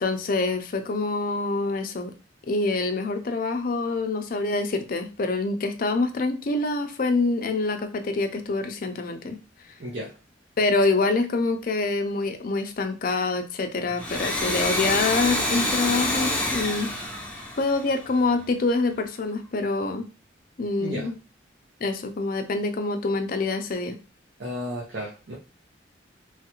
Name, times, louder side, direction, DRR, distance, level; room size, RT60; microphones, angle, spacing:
voice 1, 0.0-2.1 2.5-9.4 10.6-16.9 17.6-20.1 20.6-21.1 21.8-24.0, left 3 dB, 50° left, 6 dB, 0.4 m, -26 dB
voice 2, 9.8-10.1 20.8-21.1 24.4-25.3, equal, 65° right, -4 dB, 0.7 m, -33 dB
Domestic sounds home sounds, 13.9-18.4, left 1 dB, 10° left, 0.6 m, -27 dB
3.1 x 2.3 x 2.9 m, 0.32 s
head